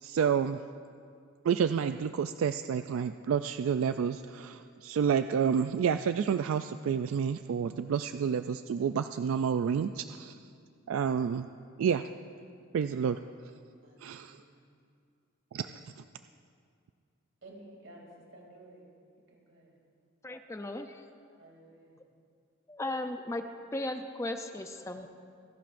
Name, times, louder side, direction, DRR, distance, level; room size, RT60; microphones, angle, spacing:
voice 1, 0.0-0.6 1.4-10.4 10.9-11.5 11.8-12.0 12.7-13.2 14.0-14.4 15.5-15.7, right 7 dB, 85° right, 10 dB, 0.3 m, -29 dB
voice 2, 13.8-14.7 15.5-15.8 17.4-18.9 19.3-19.8 21.4-22.0, right 1 dB, 65° right, -1 dB, 2.7 m, -54 dB
voice 3, 20.2-21.2 22.7-23.4 23.7-25.1, left 2 dB, 15° left, 6 dB, 0.4 m, -36 dB
27.0 x 11.5 x 2.6 m, 2.3 s
head